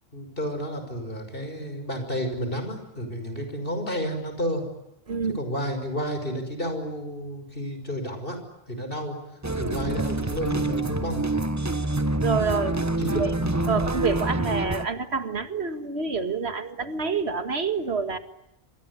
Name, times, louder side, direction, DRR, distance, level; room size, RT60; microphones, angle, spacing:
voice 1, 0.1-4.6 5.3-8.4 8.7-9.2 9.6-11.3 12.6-13.2, equal, 60° left, 7 dB, 6.0 m, -31 dB
voice 2, 5.1-5.4 12.2-12.8 13.2-13.3 13.7-18.2, right 5 dB, 85° right, 10 dB, 2.1 m, -27 dB
sound 1, 9.4-14.9, right 2 dB, 15° right, 1.1 m, -26 dB
27.5 x 22.0 x 9.9 m, 0.89 s
omnidirectional pair, 1.1 m